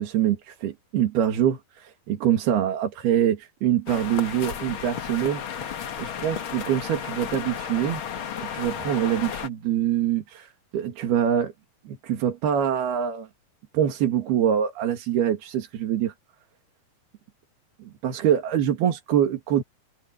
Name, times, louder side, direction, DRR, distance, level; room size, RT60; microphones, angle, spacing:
voice 1, 0.0-5.4 6.0-8.0 8.5-11.5 11.9-13.3 13.7-16.1 17.8-19.6, right 10 dB, 90° right, 4.2 m, -24 dB
sound 1, 3.9-9.5, left 8 dB, 60° left, 1.3 m, -33 dB
open air
omnidirectional pair, 4.4 m